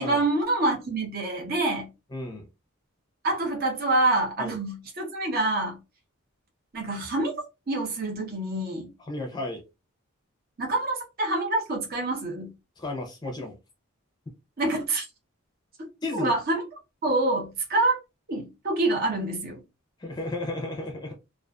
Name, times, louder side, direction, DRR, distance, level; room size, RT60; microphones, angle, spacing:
voice 1, 0.0-1.9 3.2-5.8 6.7-7.3 7.7-8.9 10.6-12.5 14.6-15.0 16.1-16.6 17.0-18.0 18.3-19.6, right 2 dB, 45° right, 0.7 m, -26 dB
voice 2, 2.1-2.4 4.4-4.6 9.0-9.6 12.8-13.6 16.0-16.4 20.0-21.1, left 2 dB, 20° left, 0.5 m, -33 dB
2.4 x 2.4 x 2.3 m
head